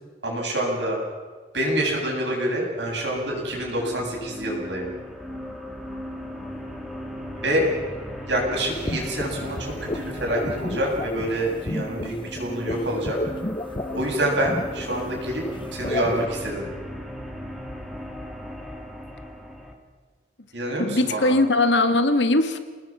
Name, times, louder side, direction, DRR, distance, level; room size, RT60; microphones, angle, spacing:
voice 1, 0.2-1.0 1.5-4.9 7.4-7.7 8.3-13.2 13.9-15.4 15.7-16.7 20.5-21.4, right 1 dB, 80° right, -1 dB, 8.0 m, -26 dB
sound 1, 2.7-19.7, equal, ahead, 2.5 m, -37 dB
sound 2, 8.7-16.3, left 1 dB, 30° left, 0.9 m, -32 dB
voice 2, 20.8-22.6, left 2 dB, 90° left, 8 dB, 1.8 m, -20 dB
30.0 x 20.0 x 6.3 m, 1.5 s
head